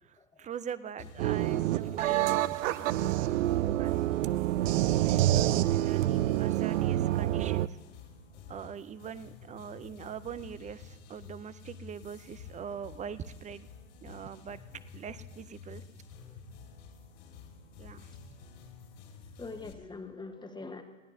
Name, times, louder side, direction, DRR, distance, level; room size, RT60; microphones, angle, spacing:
voice 1, 0.0-4.2 5.0-7.8 8.5-13.7 14.0-14.6 14.9-15.8 17.8-18.1, right 7 dB, 20° right, 15 dB, 0.5 m, -43 dB
sound 1, 1.0-19.7, left 5 dB, 65° left, 2.8 m, -50 dB
sound 2, 1.2-7.7, right 14 dB, 75° right, 0.5 m, -27 dB
voice 2, 19.4-20.8, left 3 dB, 10° left, 6 dB, 1.4 m, -44 dB
21.0 x 16.5 x 2.8 m, 1.3 s
hypercardioid pair, 90°, 39 cm